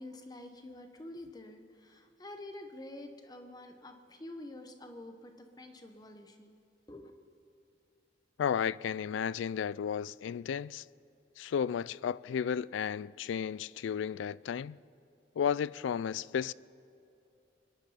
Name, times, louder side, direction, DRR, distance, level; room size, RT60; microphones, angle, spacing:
voice 1, 0.0-6.6 6.9-7.1, left 1 dB, 20° left, 1.0 m, -48 dB
voice 2, 8.4-10.8 11.4-14.8 15.4-16.5, left 7 dB, 85° left, 0.3 m, -33 dB
23.5 x 10.5 x 5.7 m
head